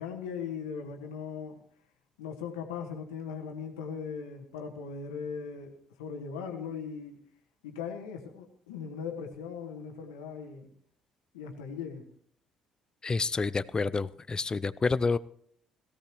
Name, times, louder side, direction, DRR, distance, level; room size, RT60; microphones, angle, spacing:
voice 1, 0.0-1.6 2.2-7.2 7.6-10.7 11.3-12.0, left 6 dB, 85° left, 3 dB, 1.6 m, -39 dB
voice 2, 13.0-15.2, left 4 dB, 30° left, 17 dB, 0.5 m, -28 dB
17.5 x 15.5 x 3.1 m, 0.64 s
hypercardioid pair, 55°, 3 cm